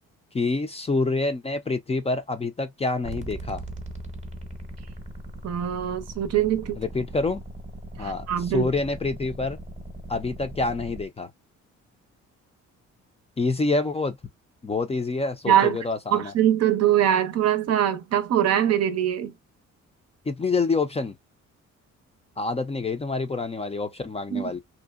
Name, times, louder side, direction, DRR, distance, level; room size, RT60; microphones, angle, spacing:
voice 1, 0.3-3.6 6.8-7.4 8.0-8.2 8.5-9.6 10.1-11.3 13.4-14.2 14.6-16.3 20.3-21.2 22.4-24.6, left 3 dB, 20° left, 0.5 m, -27 dB
sound 1, 3.0-11.1, right 2 dB, 25° right, 0.8 m, -39 dB
voice 2, 5.4-6.8 8.0-8.7 15.5-15.8 16.1-19.3 24.3-24.5, right 10 dB, 55° right, 0.6 m, -22 dB
2.7 x 2.1 x 2.3 m
cardioid pair, 90°, 30 cm